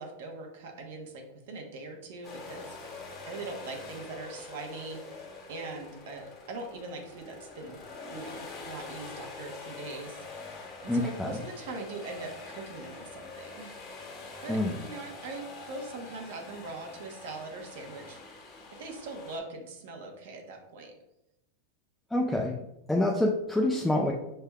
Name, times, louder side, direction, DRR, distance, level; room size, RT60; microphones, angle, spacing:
voice 1, 0.0-7.8 8.1-13.8 14.4-20.9, right 3 dB, 65° right, 2 dB, 0.9 m, -42 dB
sound 1, 2.2-19.4, left 3 dB, 25° left, 0.8 m, -45 dB
voice 2, 10.9-11.4 14.5-14.8 22.1-22.6 22.9-24.1, left 1 dB, 5° left, -1 dB, 0.3 m, -27 dB
5.4 x 3.3 x 2.3 m, 0.88 s
supercardioid pair, 165°, 0 cm